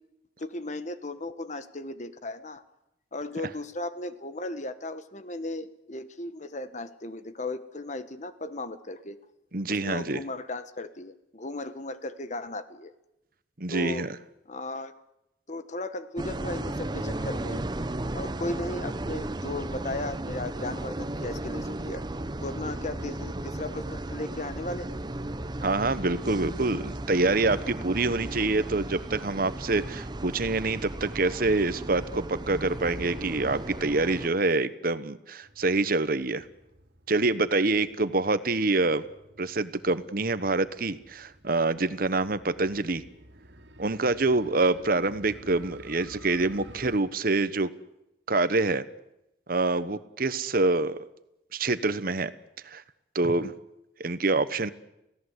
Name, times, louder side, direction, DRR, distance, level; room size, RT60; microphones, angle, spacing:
voice 1, 0.4-2.6 3.1-9.2 9.7-12.9 13.7-14.1 14.5-14.9 15.5-17.6 18.1-22.0 22.4-25.0, left 2 dB, 40° left, 12 dB, 1.3 m, -36 dB
voice 2, 9.5-10.2 13.6-14.1 25.6-36.4 37.1-39.1 39.4-43.0 43.8-47.7 48.3-48.8 49.5-51.1 51.5-52.3 52.6-52.8 53.1-53.5 54.0-54.7, right 3 dB, 55° right, 13 dB, 1.1 m, -26 dB
sound 1, 16.2-34.3, right 1 dB, 25° right, 0.8 m, -35 dB
Motorcycle, 35.4-47.0, right 1 dB, 80° right, 2.4 m, -51 dB
28.5 x 17.0 x 8.1 m, 0.89 s
head